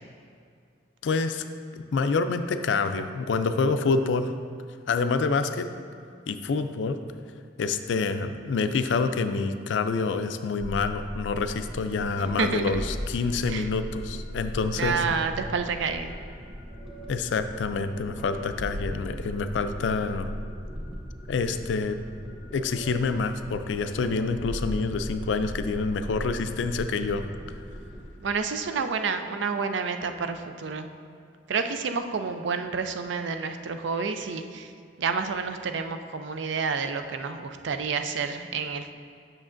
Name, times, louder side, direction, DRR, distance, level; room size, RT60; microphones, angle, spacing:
voice 1, 1.0-1.4 1.9-4.3 4.9-5.7 6.3-7.0 7.6-15.0 17.1-20.3 21.3-22.0 22.5-27.2, left 4 dB, 75° left, 9 dB, 0.4 m, -27 dB
sound 1, 10.6-28.1, equal, ahead, 1.0 m, -38 dB
voice 2, 12.4-12.8 13.5-13.7 14.7-16.1 28.2-30.9 31.5-34.7 35.0-38.9, right 5 dB, 75° right, 8 dB, 0.4 m, -29 dB
8.4 x 6.4 x 2.5 m, 2.3 s
head